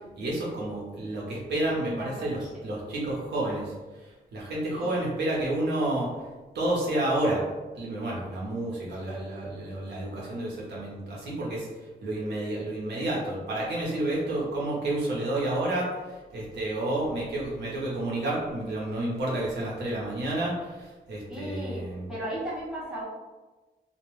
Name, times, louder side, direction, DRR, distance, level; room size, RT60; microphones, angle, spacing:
voice 1, 0.2-6.1 6.5-7.4 7.7-11.7 12.0-22.1, right 1 dB, 90° right, -5 dB, 0.8 m, -30 dB
voice 2, 1.8-2.7 4.7-5.0 21.3-21.8 22.1-23.0, right 1 dB, 5° right, -9 dB, 0.8 m, -36 dB
2.2 x 2.1 x 3.0 m, 1.2 s
wide cardioid pair, 165°, 17 cm